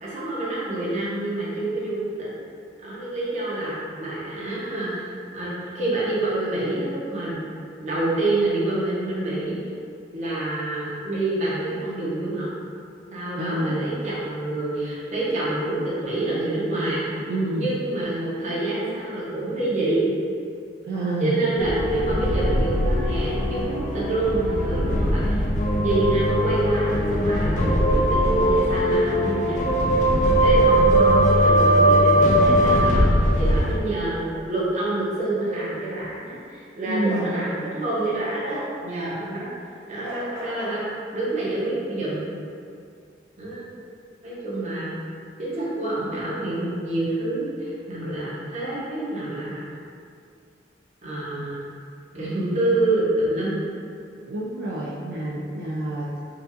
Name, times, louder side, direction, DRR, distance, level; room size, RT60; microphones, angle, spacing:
voice 1, 0.0-2.3 2.8-7.4 7.8-9.5 10.1-12.5 13.1-17.1 17.5-20.0 21.2-25.4 25.8-29.6 30.4-39.5 39.9-42.2 43.4-43.7 44.2-44.9 45.4-49.6 51.0-51.7 52.1-53.6, right 2 dB, 40° right, -8 dB, 0.9 m, -27 dB
voice 2, 13.4-13.9 17.3-17.7 20.8-21.4 21.7-21.8 30.9-31.0 36.9-37.4 54.3-56.2, right 1 dB, 65° right, -5 dB, 0.3 m, -28 dB
sound 1, 21.6-33.8, equal, 45° left, 0.3 m, -20 dB
Bark, 37.1-37.3 38.5-38.7 40.0-40.8, equal, 75° left, 1.0 m, -36 dB
4.5 x 2.5 x 2.5 m, 2.4 s
head